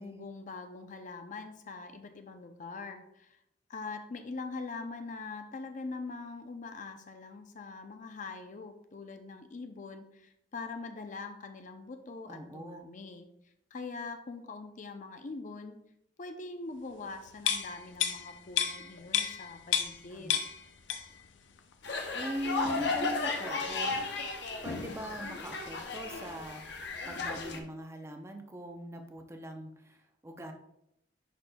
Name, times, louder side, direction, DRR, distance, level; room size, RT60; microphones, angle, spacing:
voice 1, 0.0-3.4 3.7-13.3 13.7-15.8 16.2-20.4, left 3 dB, 45° left, 7 dB, 0.5 m, -43 dB
voice 2, 12.3-12.9 20.1-20.4 22.1-24.0 24.6-30.5, right 1 dB, 15° right, 4 dB, 0.6 m, -41 dB
sound 1, 17.4-20.0 20.3-21.3 21.6-21.7, left 9 dB, 90° left, 0.5 m, -31 dB
sound 2, 21.8-27.6, left 3 dB, 70° left, 0.9 m, -35 dB
10.0 x 4.2 x 2.2 m, 0.79 s
head